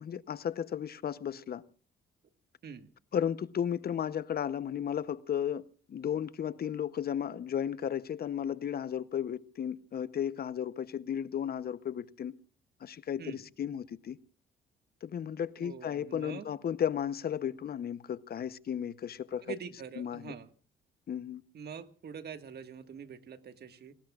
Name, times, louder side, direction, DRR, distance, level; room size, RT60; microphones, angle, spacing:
voice 1, 0.0-1.6 3.1-12.4 12.8-14.2 15.0-19.5 20.0-20.3 21.1-21.4, left 9 dB, 50° left, 0.8 m, -34 dB
voice 2, 15.6-16.5 19.4-20.5 21.5-23.9, right 7 dB, 55° right, 1.7 m, -44 dB
29.5 x 19.5 x 2.4 m
cardioid pair, 90°, 20 cm